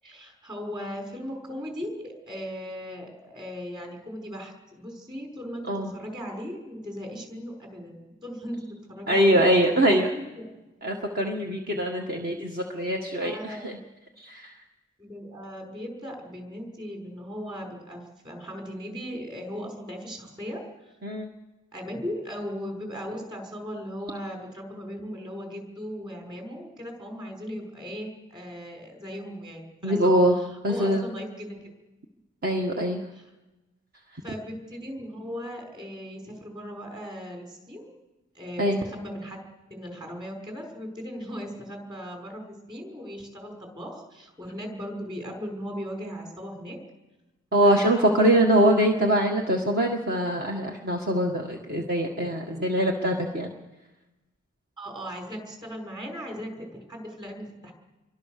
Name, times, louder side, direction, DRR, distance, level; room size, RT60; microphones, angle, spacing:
voice 1, 0.0-9.5 10.1-10.2 13.2-13.6 15.0-20.6 21.7-30.1 30.7-31.7 34.2-37.9 38.3-39.4 39.7-46.8 47.6-48.3 54.8-57.7, equal, 25° right, 1 dB, 6.2 m, -37 dB
voice 2, 9.1-10.1 10.8-13.8 14.2-14.6 21.0-21.3 29.8-30.4 30.6-31.1 32.4-33.1 34.1-34.2 38.6-38.8 47.5-53.5, right 1 dB, 45° right, 1 dB, 1.7 m, -23 dB
28.5 x 23.5 x 6.8 m, 1.1 s
head